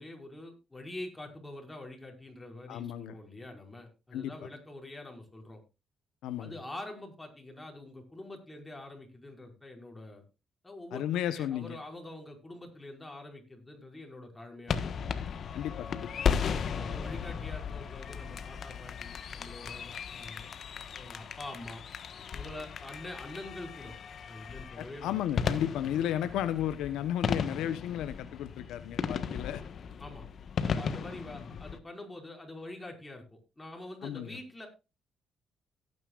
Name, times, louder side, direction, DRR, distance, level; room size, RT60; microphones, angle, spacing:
voice 1, 0.0-5.6 6.4-10.2 10.6-15.3 16.6-20.5 20.9-21.8 22.3-24.0 24.3-25.2 30.0-30.3 30.6-33.2 33.6-34.7, left 1 dB, 15° left, 2 dB, 5.2 m, -45 dB
voice 2, 2.7-3.2 4.1-4.3 6.2-6.5 10.9-11.8 15.5-16.3 24.8-29.6 34.0-34.4, left 11 dB, 90° left, 12 dB, 0.9 m, -34 dB
sound 1, 14.7-31.8, left 7 dB, 55° left, 1.3 m, -36 dB
17.0 x 9.8 x 2.4 m, 0.28 s
cardioid pair, 90°, 0 cm